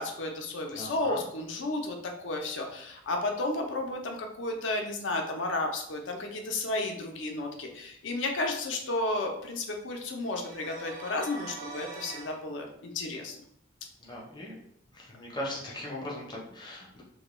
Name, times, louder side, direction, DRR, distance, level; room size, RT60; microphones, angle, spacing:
voice 1, 0.0-13.4, left 2 dB, 70° left, 3 dB, 0.5 m, -33 dB
voice 2, 0.7-1.2 14.0-14.6 14.9-17.0, left 1 dB, 20° left, -3 dB, 0.6 m, -39 dB
sound 1, 10.2-12.4, right 4 dB, 45° right, 0.5 m, -43 dB
2.2 x 2.2 x 3.0 m, 0.74 s
head